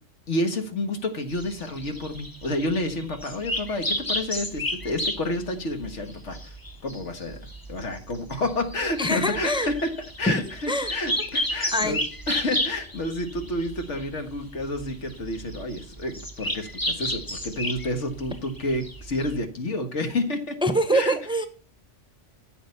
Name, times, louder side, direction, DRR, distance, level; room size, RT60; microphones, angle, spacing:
voice 1, 0.3-6.6 6.8-7.4 7.7-9.9 10.2-12.0 12.3-20.6 20.9-21.2, left 1 dB, 75° left, 6 dB, 1.9 m, -29 dB
sound 1, 1.3-19.4, left 1 dB, 20° left, 1.3 m, -33 dB
voice 2, 9.0-9.7 10.3-10.4 10.7-10.9 11.7-12.0 20.6-21.5, equal, 5° right, 9 dB, 0.9 m, -24 dB
14.0 x 7.0 x 5.5 m, 0.38 s
omnidirectional pair, 1.2 m